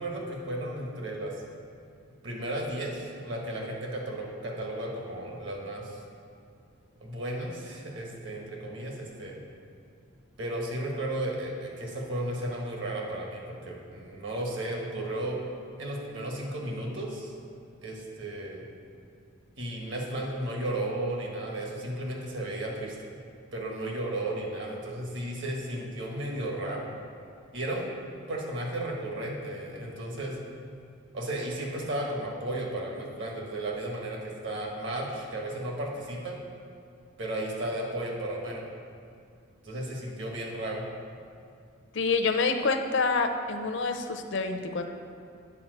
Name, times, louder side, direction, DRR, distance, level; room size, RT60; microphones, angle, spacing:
voice 1, 0.0-1.3 2.2-6.0 7.0-9.4 10.4-15.4 15.8-17.3 17.8-18.6 19.6-23.0 23.5-26.9 27.5-27.9 28.3-30.4 31.1-36.4 37.2-38.6 39.6-40.8, right 1 dB, 60° right, -1 dB, 1.4 m, -34 dB
voice 2, 41.9-44.8, left 4 dB, 60° left, 6 dB, 0.6 m, -27 dB
8.5 x 4.8 x 6.4 m, 2.4 s
head